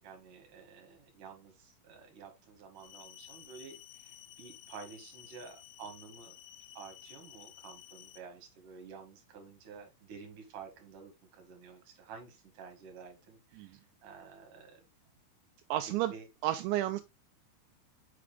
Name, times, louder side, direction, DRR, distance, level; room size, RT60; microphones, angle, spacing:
voice 1, 0.0-6.3 6.7-14.8 15.9-16.3, right 5 dB, 55° right, 2.7 m, -51 dB
sound 1, 2.8-8.2, left 12 dB, 90° left, 3.2 m, -53 dB
voice 2, 15.7-16.1 16.4-17.0, right 14 dB, 85° right, 2.6 m, -31 dB
6.3 x 5.9 x 3.5 m
omnidirectional pair, 5.7 m